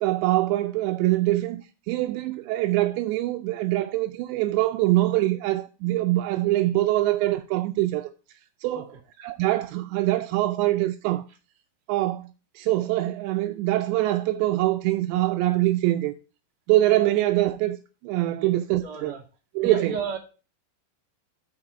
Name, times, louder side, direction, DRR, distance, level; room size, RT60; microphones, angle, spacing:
voice 1, 0.0-8.1 8.6-8.8 9.2-11.2 11.9-12.3 12.6-16.1 16.7-17.8 18.0-19.1 19.6-19.9, right 16 dB, 85° right, 2.8 m, -24 dB
voice 2, 18.8-19.2 19.6-20.2, right 5 dB, 30° right, 2.3 m, -32 dB
8.7 x 6.7 x 4.9 m
omnidirectional pair, 5.1 m